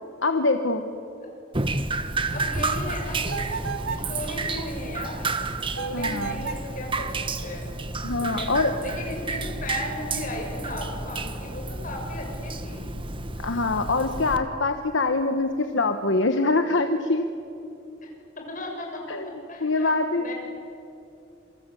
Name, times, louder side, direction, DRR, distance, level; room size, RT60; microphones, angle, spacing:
voice 1, 0.2-0.8 5.9-6.5 8.0-8.8 13.4-17.2 19.1-19.3 19.6-20.3, left 3 dB, 65° left, 7 dB, 1.2 m, -24 dB
Drip, 1.5-14.4, right 3 dB, 25° right, 1.2 m, -31 dB
voice 2, 2.3-7.7 8.2-8.5 8.8-12.9 18.0-19.2 19.5-20.3, left 1 dB, 40° left, 0 dB, 6.9 m, -36 dB
sound 1, 3.3-4.1 5.7-6.7, right 6 dB, 85° right, 1.4 m, -33 dB
27.5 x 24.0 x 8.4 m, 2.7 s
head